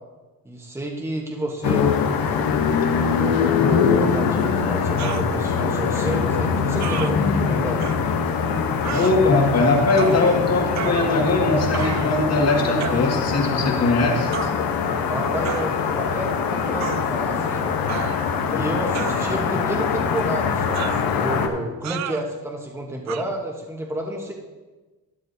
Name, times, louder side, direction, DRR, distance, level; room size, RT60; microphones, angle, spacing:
voice 1, 0.4-1.9 3.1-7.8 15.1-17.7 18.5-24.3, right 1 dB, 5° right, -1 dB, 1.2 m, -30 dB
sound 1, 1.6-21.5, left 6 dB, 75° left, 1.0 m, -23 dB
sound 2, 5.0-5.3 6.8-7.1 7.8-8.0 8.8-9.1 10.0-10.2 10.7-11.4 11.7-12.2 12.8-13.1 14.3-14.5 15.4-15.7 16.8-17.0 17.9-18.4 18.9-19.6 20.7-21.1 21.8-22.2 23.1-23.2, right 11 dB, 50° right, 0.5 m, -31 dB
voice 2, 8.9-14.5, left 2 dB, 45° left, 1 dB, 2.0 m, -20 dB
12.0 x 10.5 x 2.7 m, 1.2 s
cardioid pair, 125°, 36 cm